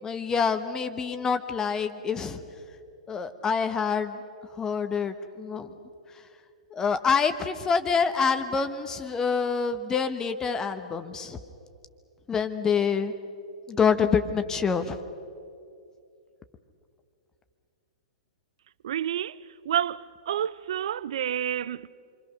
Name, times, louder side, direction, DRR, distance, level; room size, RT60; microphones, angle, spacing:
voice 1, 0.0-2.4 3.1-4.2 4.6-5.7 6.7-11.4 12.3-13.1 13.7-15.0, left 6 dB, 15° left, 1.2 m, -26 dB
voice 2, 18.8-19.4 19.7-21.9, right 10 dB, 60° right, 0.5 m, -29 dB
28.5 x 24.5 x 6.4 m
figure-of-eight pair, 110°, 4 cm